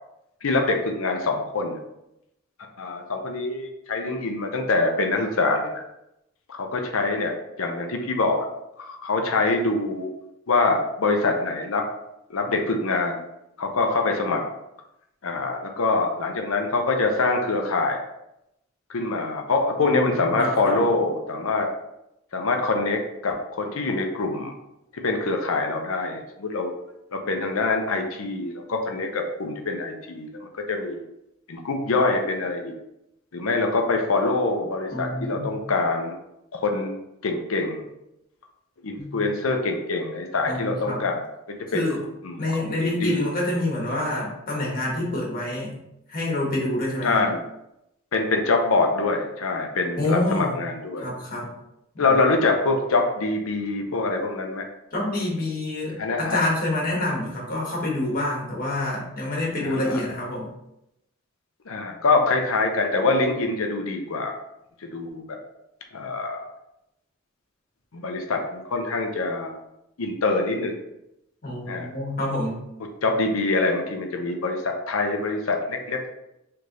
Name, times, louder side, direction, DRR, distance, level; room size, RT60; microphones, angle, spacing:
voice 1, 0.4-1.8 2.8-5.7 6.5-8.5 8.8-10.1 10.5-11.8 12.3-13.2 13.6-14.4 15.2-18.0 18.9-21.7 22.3-24.5 24.9-26.7 27.1-31.0 31.5-32.7 33.3-36.1 36.5-36.9 37.2-37.9 38.8-41.9 42.2-43.3 47.0-47.4 48.1-51.1 52.0-54.6 56.0-56.4 59.6-60.0 61.7-64.4 64.8-65.4 65.9-66.5 67.9-69.6 70.0-70.8 71.7-71.9 73.0-76.1, left 3 dB, 70° left, 3 dB, 0.7 m, -25 dB
voice 2, 19.8-20.8 34.9-35.6 39.0-39.3 40.5-41.1 41.7-42.0 42.4-45.8 46.1-47.3 50.0-50.6 51.0-51.5 51.9-52.1 54.9-60.5 71.4-72.6, left 1 dB, 40° left, -3 dB, 1.4 m, -27 dB
3.4 x 3.3 x 3.9 m, 0.85 s
head